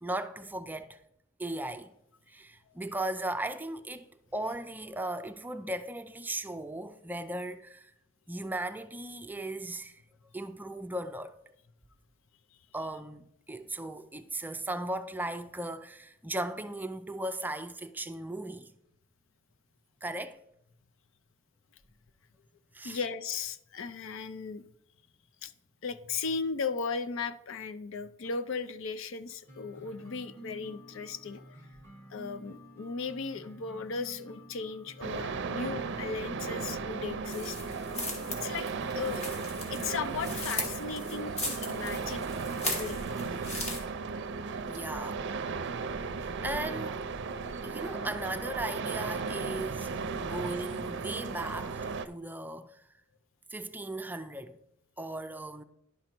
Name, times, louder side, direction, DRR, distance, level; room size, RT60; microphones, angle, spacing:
voice 1, 0.0-1.0 1.4-1.9 2.3-7.9 8.3-10.0 10.3-11.4 12.7-18.7 20.0-20.4 22.7-23.0 43.4-43.7 44.6-45.3 46.2-47.1 47.6-52.9 53.5-54.6 55.0-55.6, right 1 dB, 10° right, 0.5 m, -37 dB
voice 2, 22.8-24.6 25.4-25.5 25.8-31.6 32.1-37.6 38.3-38.7 39.0-39.2 39.7-42.3 42.7-43.0 47.4-47.5 50.0-50.4, left 5 dB, 70° left, 0.5 m, -36 dB
sound 1, 29.5-43.9, right 1 dB, 10° left, 1.7 m, -50 dB
sound 2, 35.0-52.1, right 4 dB, 60° right, 0.5 m, -36 dB
sound 3, 37.3-43.8, left 1 dB, 35° left, 2.1 m, -38 dB
11.0 x 5.2 x 4.4 m
head